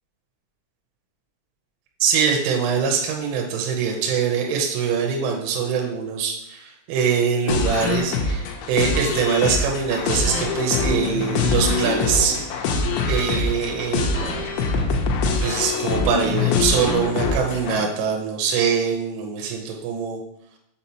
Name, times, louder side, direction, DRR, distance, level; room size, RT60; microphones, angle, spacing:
voice 1, 2.0-12.8 13.1-14.1 15.4-20.2, right 6 dB, 85° right, 1 dB, 3.2 m, -23 dB
sound 1, 7.5-17.8, left 4 dB, 85° left, 2.5 m, -24 dB
sound 2, 12.5-17.7, right 2 dB, 65° right, 2.3 m, -40 dB
6.8 x 4.8 x 2.9 m, 0.81 s
omnidirectional pair, 5.8 m